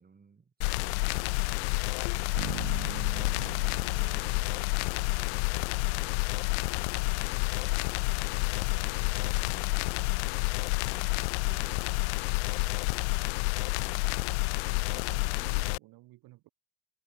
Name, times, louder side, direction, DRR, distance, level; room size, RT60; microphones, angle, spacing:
voice 1, 0.0-1.7 3.2-6.2 6.5-11.9, right 5 dB, 20° right, 3.8 m, -57 dB
sound 1, 0.6-15.8, left 30 dB, 55° left, 0.5 m, -29 dB
sound 2, 2.4-5.8, right 12 dB, 75° right, 2.2 m, -43 dB
voice 2, 14.6-16.5, right 19 dB, 55° right, 6.5 m, -54 dB
figure-of-eight pair, 70°, 42 cm